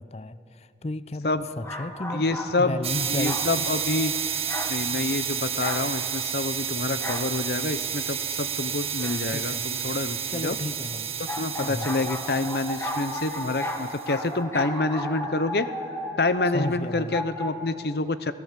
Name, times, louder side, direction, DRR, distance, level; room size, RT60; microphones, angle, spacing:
voice 1, 0.0-3.4 9.3-9.7 10.3-11.1 11.6-11.9 16.5-17.2, left 2 dB, 35° left, 15 dB, 0.6 m, -33 dB
sound 1, 1.6-2.5 3.2-3.5 4.5-4.8 5.6-5.9 7.0-7.3 9.0-9.2 11.3-17.5, equal, 15° left, 1.8 m, -34 dB
voice 2, 2.1-2.8 3.1-4.1 4.7-10.6 11.4-15.7 16.2-18.3, left 2 dB, 65° left, 13 dB, 0.8 m, -27 dB
sound 2, 2.8-14.1, right 8 dB, 35° right, 1.5 m, -31 dB
26.5 x 17.5 x 7.5 m, 2.7 s
head